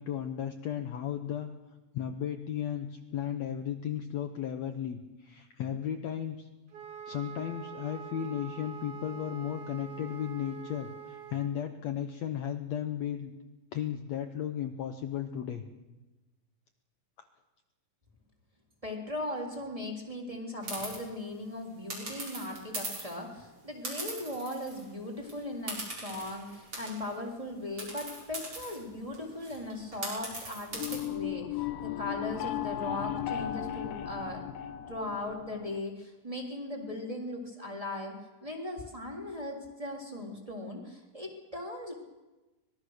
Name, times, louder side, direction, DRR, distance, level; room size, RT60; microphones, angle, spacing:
voice 1, 0.0-1.5 1.9-6.5 7.1-13.3 13.7-15.6, left 9 dB, 65° left, 7 dB, 2.0 m, -35 dB
Wind instrument woodwind instrument, 6.7-11.5, right 8 dB, 65° right, 3.3 m, -45 dB
voice 2, 18.8-34.4 34.9-41.9, left 1 dB, 10° right, 1 dB, 3.3 m, -38 dB
sound 1, 20.6-21.0 21.9-23.2 23.8-24.9 25.2-25.3 25.7-27.2 27.8-31.0, right 2 dB, 40° right, 7.9 m, -40 dB
sound 2, 30.7-35.8, left 11 dB, 85° left, 2.7 m, -36 dB
25.0 x 21.0 x 6.5 m, 1.1 s
omnidirectional pair, 3.9 m